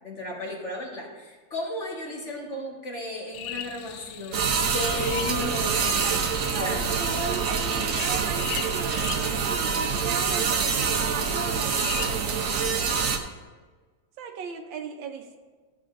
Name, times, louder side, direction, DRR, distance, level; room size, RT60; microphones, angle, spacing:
voice 1, 0.0-6.2 6.6-6.8, left 2 dB, 40° left, -2 dB, 1.4 m, -34 dB
sound 1, 3.3-13.2, left 9 dB, 75° left, 0.8 m, -40 dB
sound 2, 4.3-13.2, right 6 dB, 60° right, 0.9 m, -26 dB
voice 2, 5.9-12.3 14.2-15.4, right 5 dB, 75° right, 5 dB, 1.5 m, -37 dB
14.0 x 7.7 x 2.5 m, 1.4 s
omnidirectional pair, 2.1 m